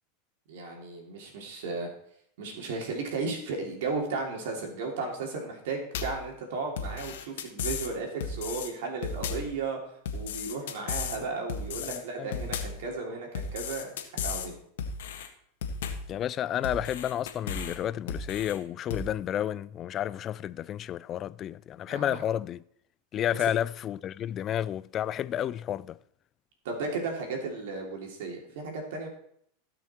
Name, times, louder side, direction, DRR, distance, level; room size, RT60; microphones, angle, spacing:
voice 1, 0.5-1.9 2.4-9.8 10.1-14.6 21.9-22.2 26.6-29.1, right 3 dB, 75° right, 3.2 m, -35 dB
sound 1, 5.9-6.3 6.8-7.9 8.2-8.7 9.0-9.5 10.1-11.2 11.5-12.0 12.3-12.8 13.3-14.5 14.8-15.3 15.6-16.1 16.6-17.8 18.1-18.6 18.9-19.1, left 5 dB, 80° left, 1.6 m, -34 dB
voice 2, 11.9-12.4 16.1-22.6 23.1-26.0, left 11 dB, 35° left, 0.4 m, -31 dB
16.5 x 6.0 x 4.5 m
hypercardioid pair, 115°, 0 cm